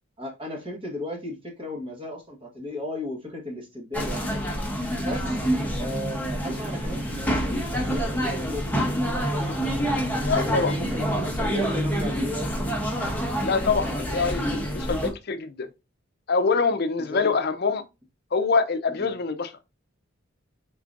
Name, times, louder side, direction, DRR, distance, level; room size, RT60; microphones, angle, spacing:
voice 1, 0.2-4.5 4.9-5.5 5.8-8.7 9.0-10.0 10.2-12.5 17.0-17.4 18.9-19.1, left 1 dB, 25° right, 1.3 m, -35 dB
sound 1, 3.9-15.1, equal, 10° left, 0.9 m, -27 dB
voice 2, 10.2-10.7 13.4-15.7 16.3-17.8 18.3-19.5, left 4 dB, 50° left, 0.6 m, -25 dB
4.8 x 3.7 x 2.5 m
head